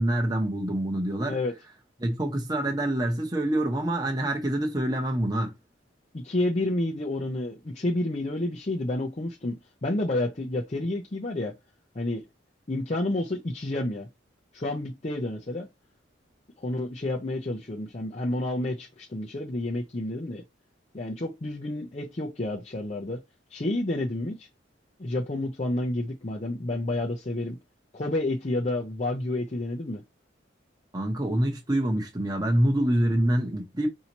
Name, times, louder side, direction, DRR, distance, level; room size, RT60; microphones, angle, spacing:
voice 1, 0.0-1.4 2.0-5.5 30.9-33.9, right 1 dB, 20° right, 0.8 m, -26 dB
voice 2, 6.1-11.5 11.9-12.2 12.7-14.1 14.5-15.7 16.6-20.4 20.9-23.2 23.5-24.5 25.0-27.6 27.9-30.0, left 1 dB, 35° left, 0.6 m, -30 dB
5.5 x 2.7 x 2.9 m
head